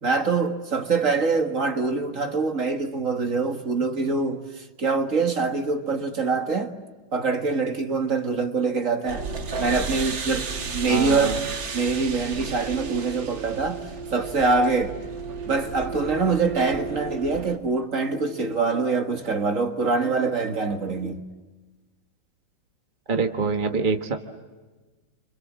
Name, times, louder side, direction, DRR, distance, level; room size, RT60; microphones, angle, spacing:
voice 1, 0.0-6.7 7.1-9.3 9.6-11.4 11.7-13.8 14.1-14.9 15.4-21.2, right 4 dB, 45° right, 2.0 m, -24 dB
sound 1, 9.1-17.6, right 5 dB, 85° right, 2.7 m, -33 dB
voice 2, 10.9-11.3 23.1-24.2, right 4 dB, 30° right, 1.4 m, -25 dB
30.0 x 26.0 x 7.5 m
omnidirectional pair, 2.0 m